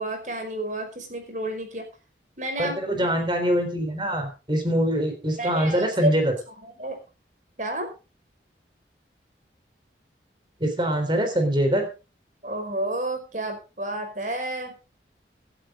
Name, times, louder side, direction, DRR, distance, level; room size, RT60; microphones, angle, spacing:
voice 1, 0.0-1.9 2.4-2.7 5.4-6.1 6.6-7.0 7.6-7.9 12.4-14.7, right 1 dB, 45° right, 5 dB, 5.1 m, -30 dB
voice 2, 2.6-6.3 10.6-11.9, equal, 25° right, 5 dB, 3.7 m, -24 dB
17.5 x 11.5 x 3.8 m, 0.32 s
head